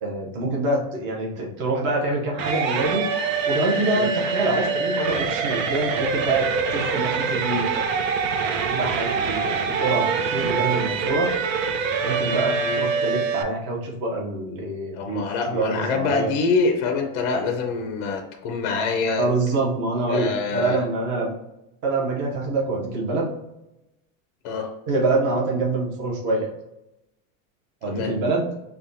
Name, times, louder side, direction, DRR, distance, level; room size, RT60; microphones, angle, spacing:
voice 1, 0.0-3.1 3.5-7.6 8.7-11.3 12.0-16.3 19.2-21.4 21.8-23.3 24.9-26.5 27.8-28.5, right 2 dB, 30° right, -2 dB, 0.7 m, -25 dB
sound 1, 2.4-13.4, right 5 dB, 70° right, 0.6 m, -25 dB
voice 2, 9.4-10.0 12.6-12.8 14.9-19.3 20.1-20.8 24.4-24.7 27.9-28.1, left 4 dB, 40° left, 3 dB, 0.5 m, -25 dB
5.4 x 2.3 x 2.6 m, 0.92 s
supercardioid pair, 170°, 40 cm